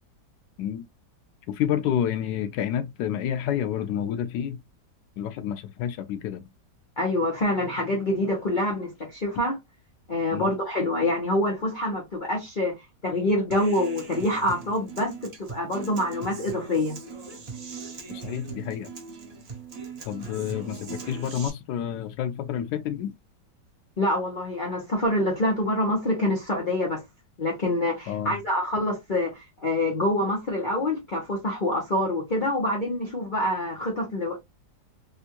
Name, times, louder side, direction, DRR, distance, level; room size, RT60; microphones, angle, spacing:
voice 1, 1.5-4.6 5.2-6.4 10.3-10.5 18.1-18.9 20.0-23.1 28.1-28.4, left 9 dB, 85° left, 1.3 m, -29 dB
voice 2, 7.0-9.6 10.1-12.8 13.0-17.0 24.0-27.0 27.4-34.4, left 1 dB, 35° left, 0.9 m, -26 dB
Human voice / Acoustic guitar, 13.5-21.5, right 4 dB, 55° right, 0.4 m, -40 dB
3.5 x 2.5 x 2.8 m
omnidirectional pair, 1.9 m